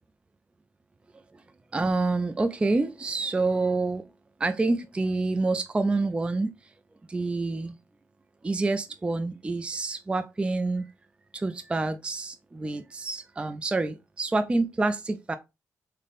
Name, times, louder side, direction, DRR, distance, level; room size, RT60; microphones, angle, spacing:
voice 1, 1.7-4.0 4.4-6.5 7.1-7.8 8.4-10.9 11.3-15.4, right 3 dB, 15° right, 0.3 m, -27 dB
4.1 x 2.1 x 3.3 m
cardioid pair, 95°, 6 cm